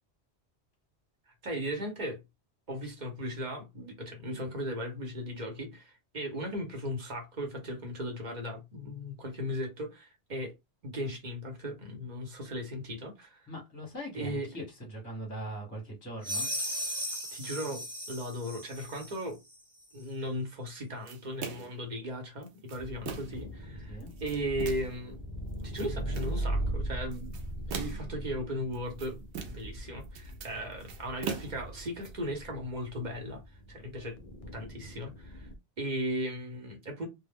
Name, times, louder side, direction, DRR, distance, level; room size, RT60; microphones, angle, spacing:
voice 1, 1.3-2.2 2.7-10.5 10.8-13.5 14.1-14.5 17.3-19.4 19.9-25.2 25.6-27.3 27.6-29.2 29.5-33.4 33.7-34.2 34.5-35.5 35.8-37.1, equal, 45° right, 1.0 m, -37 dB
voice 2, 13.5-16.5 23.9-24.1, right 1 dB, 15° left, 0.9 m, -40 dB
sound 1, 16.2-19.2, equal, 20° right, 0.9 m, -36 dB
sound 2, 21.1-21.8 22.4-23.5 24.0-25.0 25.5-26.4 27.1-28.2 28.7-29.8 30.0-32.1, right 6 dB, 90° right, 0.9 m, -41 dB
sound 3, 22.8-35.6, right 1 dB, 50° left, 0.4 m, -39 dB
2.3 x 2.1 x 3.4 m
omnidirectional pair, 1.1 m